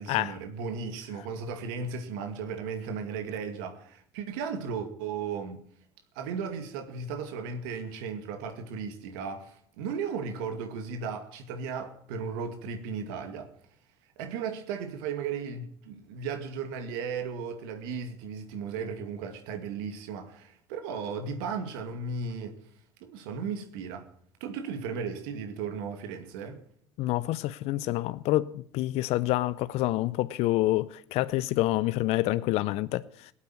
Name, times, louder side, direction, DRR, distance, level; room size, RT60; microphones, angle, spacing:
voice 1, 0.0-5.6 6.2-13.5 14.2-22.6 23.0-24.1 24.4-26.6, right 5 dB, 75° right, 2.2 m, -35 dB
voice 2, 27.0-33.3, left 17 dB, 60° left, 0.6 m, -27 dB
18.0 x 8.4 x 9.5 m
hypercardioid pair, 80°, 12 cm